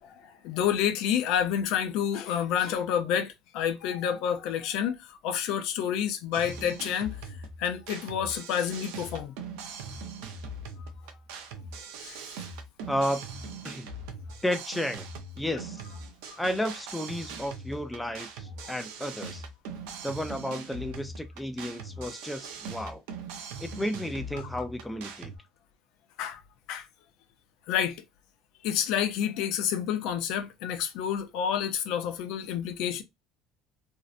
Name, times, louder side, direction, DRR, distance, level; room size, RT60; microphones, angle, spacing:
voice 1, 0.0-7.2 7.6-9.4 12.0-12.2 16.3-16.4 18.6-18.7 26.2-26.4 26.7-26.9 27.7-28.0 28.6-33.0, left 9 dB, 70° left, 0.4 m, -29 dB
sound 1, 6.3-25.4, right 3 dB, 90° right, 0.5 m, -41 dB
voice 2, 12.9-13.3 13.6-13.9 14.4-15.1 15.4-15.8 16.4-19.4 20.0-23.0 23.6-25.3, equal, 5° left, 0.3 m, -32 dB
2.6 x 2.1 x 2.4 m
cardioid pair, 135°, 0 cm